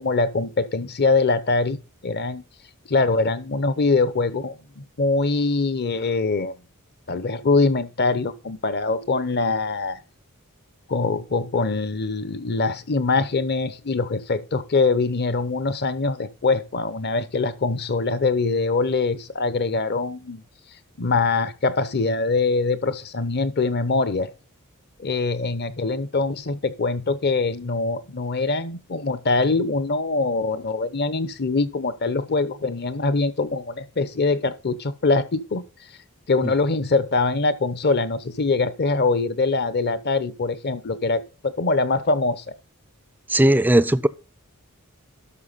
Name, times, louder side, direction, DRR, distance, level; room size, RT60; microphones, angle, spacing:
voice 1, 0.0-1.8 2.0-2.4 2.9-6.6 7.1-10.0 10.9-20.4 21.0-24.3 25.0-35.6 36.3-42.5, left 3 dB, 50° left, 0.8 m, -23 dB
voice 2, 43.3-44.1, right 1 dB, 10° right, 0.4 m, -17 dB
12.5 x 6.0 x 4.0 m
head